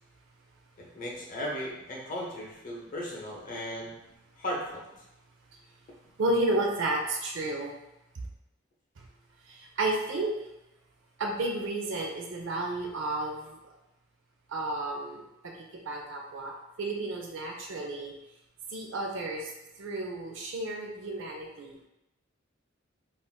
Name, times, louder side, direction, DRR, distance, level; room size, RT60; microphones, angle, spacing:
voice 1, 0.8-4.0 4.4-4.8, equal, 40° left, -3 dB, 0.8 m, -36 dB
voice 2, 6.2-7.7 8.1-8.3 9.0-9.1 9.4-10.4 11.2-13.7 14.5-18.1 18.7-19.5 19.8-21.8, right 2 dB, 65° right, 1 dB, 0.5 m, -32 dB
3.5 x 2.5 x 2.2 m, 0.90 s
head